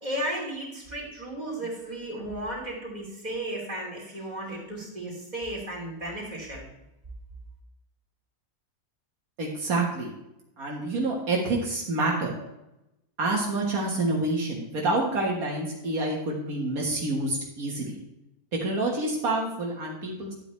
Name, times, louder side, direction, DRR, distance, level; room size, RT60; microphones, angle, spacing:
voice 1, 0.0-6.6, right 1 dB, 30° right, -3 dB, 3.1 m, -34 dB
voice 2, 9.4-10.1 10.6-12.4 13.2-18.0 18.5-20.3, right 2 dB, 75° right, -2 dB, 1.9 m, -28 dB
11.5 x 8.3 x 3.2 m, 0.91 s
omnidirectional pair, 1.5 m